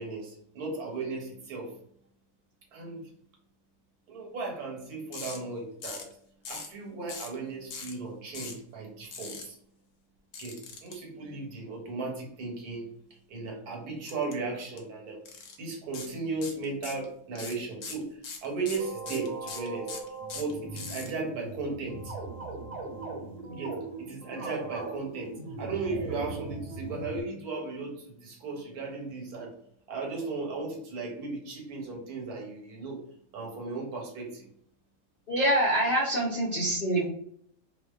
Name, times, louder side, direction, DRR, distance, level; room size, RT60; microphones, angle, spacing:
voice 1, 0.0-1.7 2.7-3.1 4.1-6.1 6.5-9.6 10.4-12.9 13.3-15.2 15.6-19.9 20.3-22.1 23.5-29.5 29.9-33.0 33.3-34.5 35.9-36.0, right 3 dB, 90° right, 0 dB, 1.3 m, -36 dB
sound 1, 5.1-5.4 5.8-6.1 6.4-6.7 7.1-7.4 7.7-7.9 8.3-8.6 9.1-9.4 10.3-10.9 14.1-14.3 14.6-14.8 15.2-15.5 15.9-16.1 16.4-17.0 17.3-21.1, left 5 dB, 70° left, 0.9 m, -40 dB
sound 2, 18.8-27.2, right 3 dB, 65° right, 1.0 m, -39 dB
voice 2, 35.3-37.1, right 1 dB, 55° left, -6 dB, 0.5 m, -25 dB
2.4 x 2.3 x 2.2 m, 0.65 s
omnidirectional pair, 1.6 m